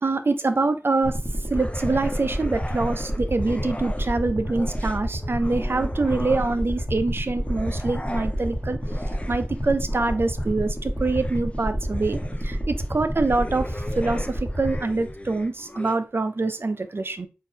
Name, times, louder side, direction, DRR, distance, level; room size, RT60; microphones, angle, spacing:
voice 1, 0.0-1.2 1.5-8.8 9.3-12.2 12.4-13.7 14.0-17.3, right 3 dB, 55° right, 0.4 m, -25 dB
sound 1, 1.0-15.4, equal, 5° left, 1.3 m, -29 dB
sound 2, 1.5-4.2 4.5-6.9 7.4-16.0, left 1 dB, 25° left, 0.4 m, -39 dB
3.7 x 2.6 x 2.7 m
wide cardioid pair, 45°, 5 cm